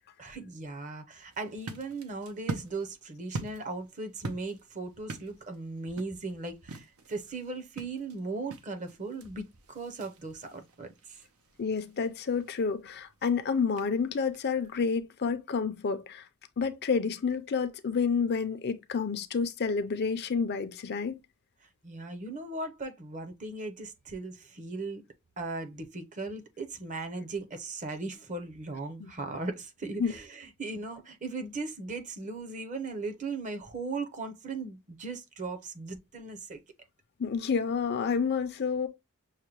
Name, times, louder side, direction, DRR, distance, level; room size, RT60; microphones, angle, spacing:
voice 1, 0.2-11.2 21.6-25.0 25.4-36.6, right 3 dB, 35° right, 0.7 m, -38 dB
sound 1, 1.3-14.8, right 3 dB, 85° right, 0.7 m, -45 dB
voice 2, 11.6-16.2 16.6-21.2 29.0-29.1 30.0-30.1 37.2-38.9, left 5 dB, 50° left, 0.5 m, -29 dB
6.4 x 2.2 x 2.9 m
head